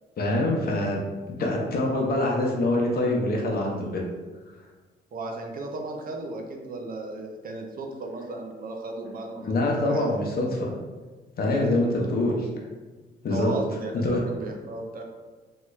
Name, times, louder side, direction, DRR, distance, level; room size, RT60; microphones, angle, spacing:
voice 1, 0.2-1.0 1.4-4.0 9.4-10.7 11.4-12.5 13.2-13.5 14.0-14.2, left 1 dB, 50° left, -1 dB, 0.7 m, -25 dB
voice 2, 5.1-9.5 9.8-10.1 11.8-12.1 13.3-15.0, right 2 dB, 45° right, 2 dB, 0.5 m, -35 dB
3.0 x 2.3 x 3.1 m, 1.3 s
cardioid pair, 90°, 20 cm